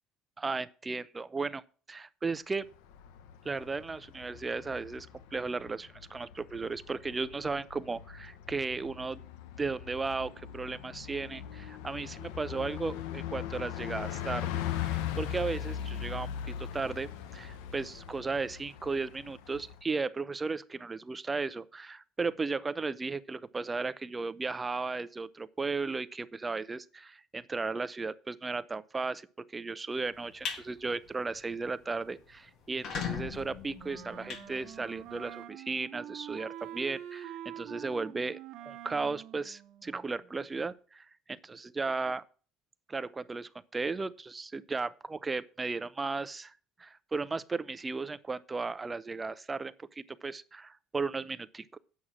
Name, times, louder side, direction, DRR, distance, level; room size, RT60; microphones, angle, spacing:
voice 1, 0.4-1.6 1.9-2.7 3.4-9.2 9.6-29.3 29.5-38.4 38.7-42.2 42.9-46.5 46.8-51.8, right 4 dB, 20° right, 0.6 m, -35 dB
Bus, 2.7-19.8, left 10 dB, 80° left, 0.8 m, -40 dB
sound 1, 30.2-30.6 31.1-31.3 31.7-31.8 32.0-32.1 32.6-35.2, left 7 dB, 55° left, 1.8 m, -38 dB
Wind instrument woodwind instrument, 33.8-40.4, right 11 dB, 55° right, 1.1 m, -46 dB
8.4 x 6.3 x 7.4 m
supercardioid pair, 105°, 0 cm